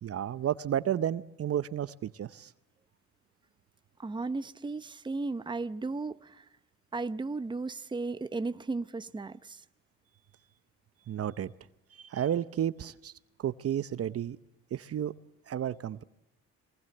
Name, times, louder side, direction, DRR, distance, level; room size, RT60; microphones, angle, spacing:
voice 1, 0.0-2.5 11.1-11.5 11.9-13.1 13.4-14.4 14.7-15.1 15.5-16.0, right 10 dB, 50° right, 0.8 m, -32 dB
voice 2, 4.0-6.5 6.9-9.6, right 3 dB, 15° right, 0.8 m, -35 dB
23.5 x 19.5 x 7.8 m
cardioid pair, 90°, 30 cm